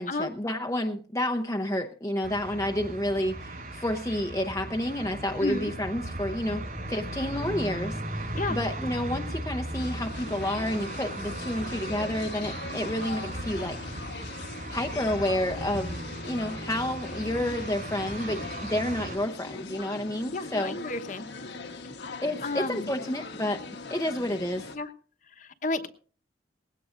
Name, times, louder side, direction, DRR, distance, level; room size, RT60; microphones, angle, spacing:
voice 1, 0.0-13.8 14.1-14.2 14.7-20.8 22.2-23.6 23.9-24.7, left 1 dB, 15° left, 4 dB, 0.7 m, -30 dB
sound 1, 2.2-19.2, right 1 dB, 45° right, 5.3 m, -37 dB
voice 2, 5.4-5.7 8.3-8.6 20.3-21.3 22.4-22.9 24.7-24.9 25.4-25.9, left 2 dB, 45° left, 8 dB, 1.1 m, -32 dB
sound 2, 9.7-24.8, left 3 dB, 75° left, 1.3 m, -41 dB
19.5 x 16.5 x 2.5 m, 0.41 s
head